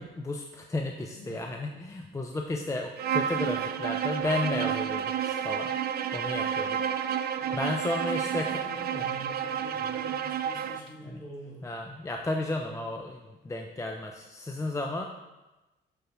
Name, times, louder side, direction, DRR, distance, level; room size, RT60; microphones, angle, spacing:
voice 1, 0.0-5.7 6.1-6.8 7.5-8.6 8.9-9.1 9.7-10.0 11.0-11.2 11.6-15.0, left 2 dB, 15° left, 2 dB, 0.4 m, -33 dB
voice 2, 1.1-1.8 7.4-11.7, equal, 45° left, -3 dB, 1.9 m, -46 dB
Bowed string instrument, 3.0-10.9, right 8 dB, 50° right, 0.4 m, -30 dB
6.2 x 5.3 x 3.1 m, 1.1 s
cardioid pair, 90°, 20 cm